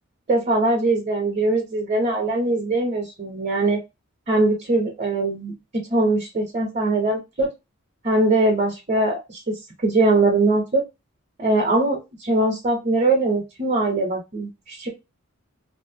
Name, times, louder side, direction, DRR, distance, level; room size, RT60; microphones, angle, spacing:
voice 1, 0.3-3.8 4.3-5.5 5.9-7.5 8.0-9.4 9.8-10.8 11.4-14.9, right 2 dB, 35° right, 0 dB, 0.7 m, -21 dB
2.6 x 2.1 x 2.7 m, 0.24 s
head